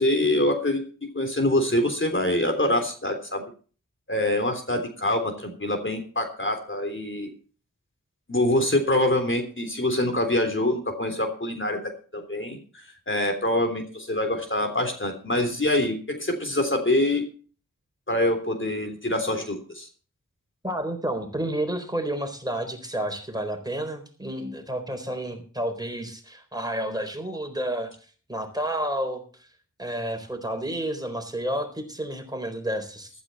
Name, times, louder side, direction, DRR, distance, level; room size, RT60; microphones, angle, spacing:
voice 1, 0.0-3.4 4.1-7.3 8.3-12.6 13.1-17.2 18.1-19.9, left 1 dB, 40° left, 5 dB, 3.4 m, -25 dB
voice 2, 20.6-27.9 28.3-29.2 29.8-33.1, right 1 dB, 10° right, 5 dB, 4.1 m, -30 dB
14.5 x 13.0 x 4.2 m, 0.39 s
wide cardioid pair, 55°, 32 cm